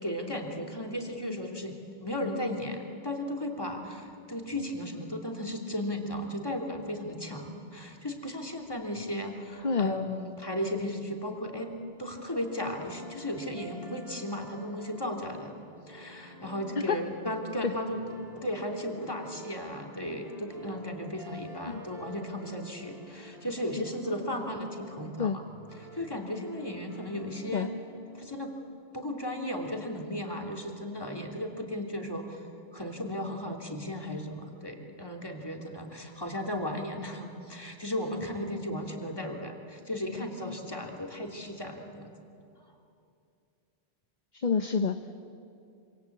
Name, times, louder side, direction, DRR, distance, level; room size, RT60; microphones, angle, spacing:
voice 1, 0.0-15.5 15.9-18.0 18.3-25.4 25.8-27.7 28.1-28.5 28.9-42.1, left 1 dB, 20° left, 1 dB, 3.0 m, -35 dB
sound 1, 12.1-29.0, right 1 dB, 35° right, 4.4 m, -49 dB
voice 2, 44.3-45.1, left 5 dB, 45° left, 8 dB, 1.0 m, -28 dB
26.5 x 26.0 x 8.5 m, 2.6 s
omnidirectional pair, 1.1 m